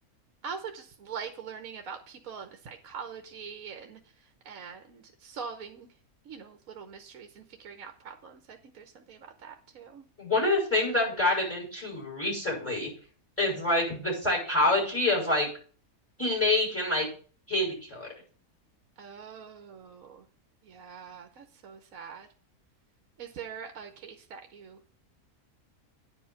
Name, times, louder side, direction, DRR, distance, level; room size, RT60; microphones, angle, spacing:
voice 1, 0.4-4.0 4.5-5.9 6.3-10.0 19.0-20.2 20.7-22.3 23.2-24.8, right 6 dB, 65° right, 5 dB, 1.3 m, -43 dB
voice 2, 10.2-12.9 13.4-15.5 16.2-17.0 17.5-18.1, left 2 dB, 10° left, -3 dB, 5.6 m, -26 dB
9.6 x 5.4 x 7.1 m, 0.42 s
omnidirectional pair, 1.6 m